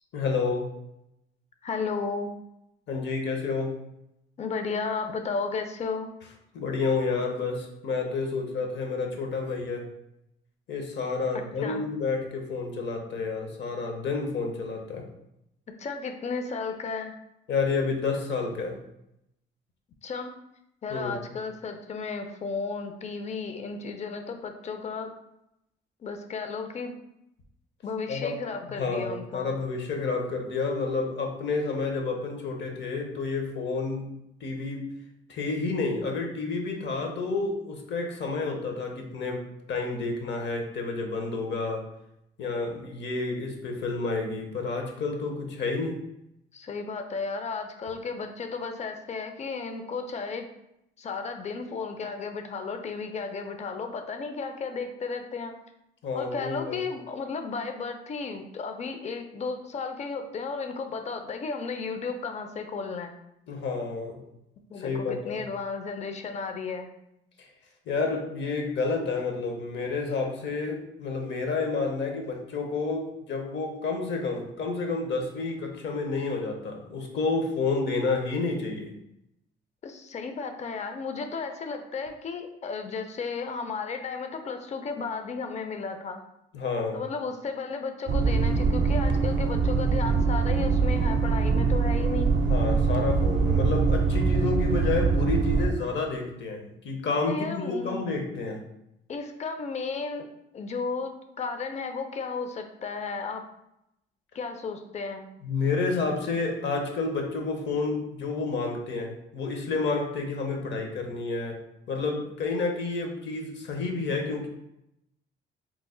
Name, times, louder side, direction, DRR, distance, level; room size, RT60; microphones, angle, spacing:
voice 1, 0.1-0.7 2.9-3.7 6.5-9.8 10.7-15.1 17.5-18.8 20.9-21.2 28.1-28.3 28.7-34.0 34.4-34.9 35.3-39.4 39.7-41.8 42.4-46.0 56.0-56.8 63.5-64.2 64.8-65.4 67.9-78.9 86.5-87.0 92.4-98.6 105.4-111.6 111.9-114.5, left 4 dB, 65° left, 2 dB, 0.8 m, -30 dB
voice 2, 1.6-2.3 4.4-6.1 11.6-11.9 15.8-17.2 20.0-20.3 20.8-25.1 26.0-26.9 27.8-29.5 46.5-50.5 51.0-55.5 56.1-63.1 64.7-66.9 79.8-86.2 86.9-92.3 97.3-98.0 99.1-100.3 100.5-101.1 101.4-103.4 104.3-105.3, left 4 dB, 35° left, 6 dB, 0.4 m, -34 dB
sound 1, 88.1-95.7, right 4 dB, 65° right, 0.4 m, -23 dB
3.0 x 2.1 x 3.7 m, 0.83 s
cardioid pair, 90°, 20 cm